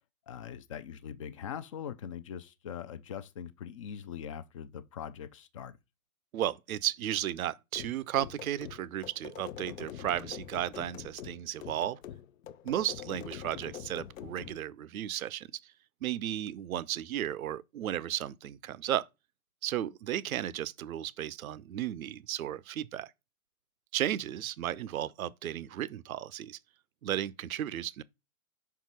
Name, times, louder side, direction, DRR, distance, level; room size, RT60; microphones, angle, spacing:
voice 1, 0.3-5.8, left 8 dB, 25° left, 0.3 m, -42 dB
voice 2, 6.3-12.0 12.6-15.5 16.0-19.1 19.6-23.1 23.9-26.6 27.0-28.0, right 12 dB, 70° right, 0.6 m, -34 dB
sound 1, 7.7-14.6, left 10 dB, 65° left, 0.7 m, -45 dB
5.5 x 4.7 x 5.3 m
figure-of-eight pair, 115°, 43 cm